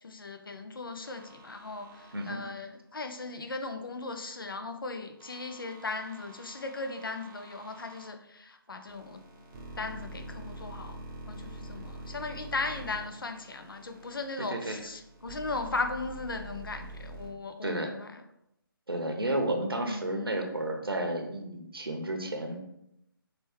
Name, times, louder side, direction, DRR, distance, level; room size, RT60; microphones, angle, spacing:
voice 1, 0.0-9.2 9.8-11.0 11.3-18.2 19.8-20.4, left 3 dB, 65° left, 7 dB, 0.6 m, -37 dB
sound 1, 1.0-2.4 5.2-8.1 8.9-14.3 14.8-17.3, right 1 dB, 15° right, 0.7 m, -46 dB
voice 2, 14.5-14.8 17.6-17.9 18.9-22.6, right 1 dB, 80° right, 4 dB, 0.9 m, -32 dB
5.2 x 3.2 x 3.1 m, 0.81 s
figure-of-eight pair, 145°, 12 cm